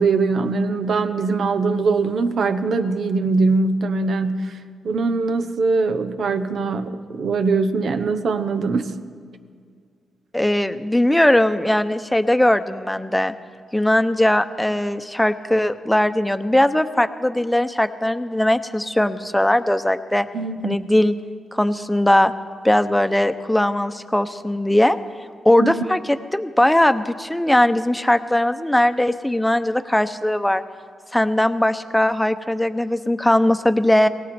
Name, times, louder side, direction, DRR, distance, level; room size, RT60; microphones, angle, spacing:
voice 1, 0.0-4.6 4.8-8.9 20.3-20.9 25.6-25.8, right 4 dB, 70° right, 9 dB, 1.0 m, -22 dB
voice 2, 10.3-13.3 13.7-20.3 20.6-21.1 21.5-22.3 22.6-25.0 25.4-30.6 31.1-34.1, left 1 dB, 5° left, 10 dB, 0.9 m, -19 dB
18.0 x 17.0 x 4.4 m, 2.1 s
cardioid pair, 65°, 0 cm